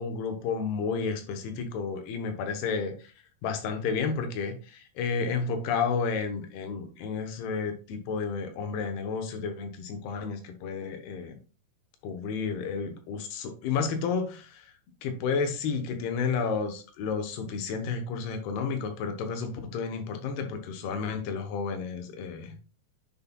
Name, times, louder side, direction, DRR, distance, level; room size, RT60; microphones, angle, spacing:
voice 1, 0.0-3.1 3.4-11.4 12.0-14.7 15.0-22.6, left 5 dB, 85° left, 6 dB, 3.0 m, -31 dB
9.5 x 5.9 x 2.3 m, 0.34 s
omnidirectional pair, 4.5 m